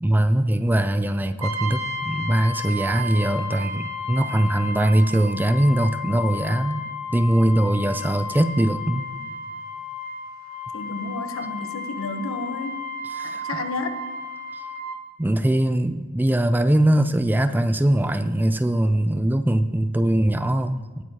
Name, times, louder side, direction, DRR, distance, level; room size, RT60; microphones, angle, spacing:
voice 1, 0.0-6.8 7.1-9.1 13.1-13.4 14.5-14.6 15.2-21.0, right 1 dB, 10° right, 9 dB, 0.3 m, -21 dB
Brass instrument, 1.4-15.0, left 2 dB, 85° right, 1.0 m, -33 dB
voice 2, 10.7-12.9 13.2-14.0, left 2 dB, 75° left, 8 dB, 1.0 m, -31 dB
18.5 x 9.2 x 2.9 m, 1.3 s
head